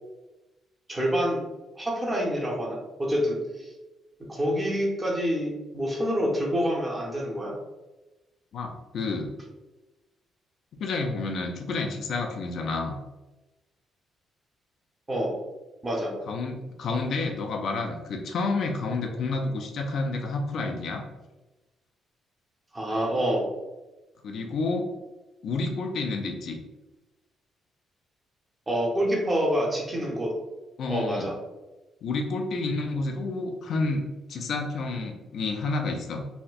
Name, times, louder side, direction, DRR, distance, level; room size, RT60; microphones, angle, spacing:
voice 1, 0.9-1.4 1.8-3.7 4.2-7.5 15.1-15.3 15.8-16.1 22.7-23.5 28.7-30.3 30.9-31.4, equal, 20° right, -2 dB, 0.7 m, -27 dB
voice 2, 8.5-9.3 10.8-13.0 16.3-21.0 24.2-24.9 25.4-26.6 30.8-31.3 32.0-34.0 34.3-36.2, left 3 dB, 60° left, 3 dB, 0.4 m, -29 dB
4.1 x 2.1 x 2.4 m, 1.1 s
cardioid pair, 140°, 0 cm